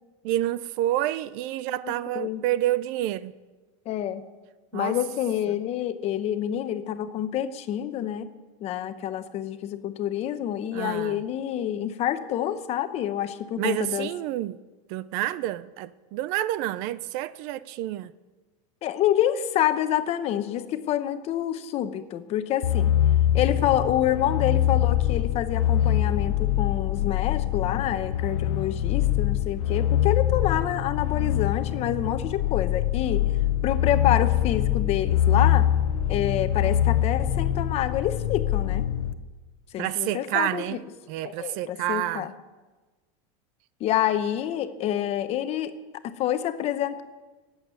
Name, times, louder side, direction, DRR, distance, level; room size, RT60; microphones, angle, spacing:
voice 1, 0.2-3.3 4.7-5.0 10.7-11.2 13.6-14.6 14.9-18.1 39.8-40.8 41.1-42.3, right 14 dB, 50° right, 0.5 m, -28 dB
voice 2, 1.8-2.4 3.9-4.2 4.7-8.3 8.6-14.1 18.8-22.9 23.3-33.2 33.6-35.7 36.1-38.8 39.7-40.6 41.2-42.3 43.8-45.7 46.0-47.0, left 11 dB, 35° left, 0.9 m, -27 dB
sound 1, 22.6-39.1, left 11 dB, 80° left, 0.9 m, -24 dB
14.5 x 8.1 x 9.3 m
supercardioid pair, 150°, 18 cm